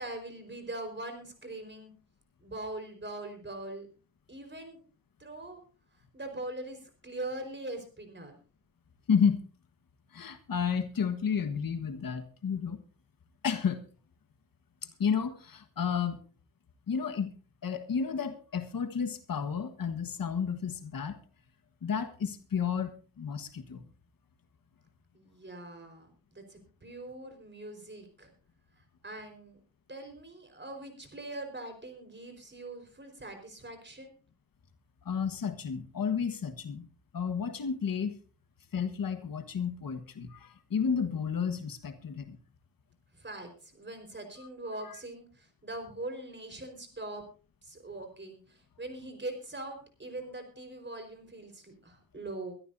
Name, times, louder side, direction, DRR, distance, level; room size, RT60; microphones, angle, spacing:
voice 1, 0.0-1.9 2.4-3.9 4.3-4.8 5.2-5.6 5.9-8.4 25.1-28.3 28.7-29.6 29.9-34.1 43.1-47.2 47.6-52.5, right 2 dB, 30° right, 6 dB, 4.6 m, -42 dB
voice 2, 9.1-9.4 10.1-12.8 13.4-13.8 15.0-16.2 16.9-17.3 17.6-21.2 21.8-23.8 35.0-36.9 37.1-38.1 38.7-42.4, left 6 dB, 75° left, 10 dB, 1.5 m, -31 dB
23.0 x 12.5 x 2.7 m, 0.36 s
cardioid pair, 80°, 34 cm